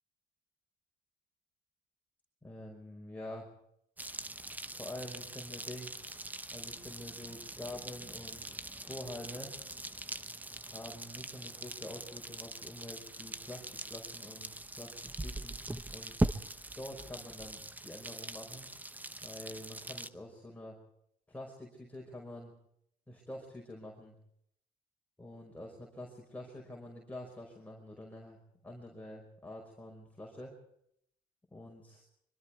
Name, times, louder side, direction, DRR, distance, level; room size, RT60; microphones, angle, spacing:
voice 1, 2.4-3.5 4.6-5.9 6.5-9.5 10.7-15.6 15.9-16.2 16.8-18.7 19.2-20.8 21.3-22.5 23.1-24.2 25.2-30.6 31.5-32.0, left 1 dB, 10° left, -1 dB, 5.3 m, -47 dB
sound 1, 4.0-20.1, right 2 dB, 10° right, 1.1 m, -41 dB
25.0 x 24.0 x 4.7 m, 0.73 s
cardioid pair, 110°, 17 cm